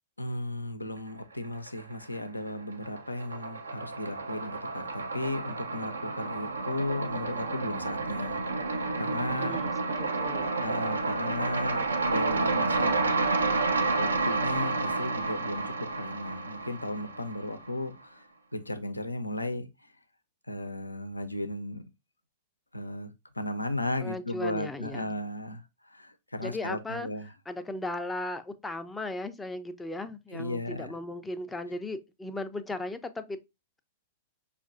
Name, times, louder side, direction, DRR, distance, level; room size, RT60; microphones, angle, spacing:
voice 1, 0.2-8.4 9.0-9.6 10.6-13.2 14.0-18.3 18.5-19.7 20.5-21.8 22.7-27.3 30.3-30.9, left 1 dB, 90° left, 0.5 m, -35 dB
sound 1, 1.4-2.2 2.5-17.7, right 3 dB, 80° right, 0.5 m, -30 dB
voice 2, 9.4-10.5 24.0-25.1 26.4-27.1 27.5-33.4, left 2 dB, 10° left, 0.4 m, -37 dB
5.2 x 2.4 x 2.4 m
figure-of-eight pair, 100°, 0 cm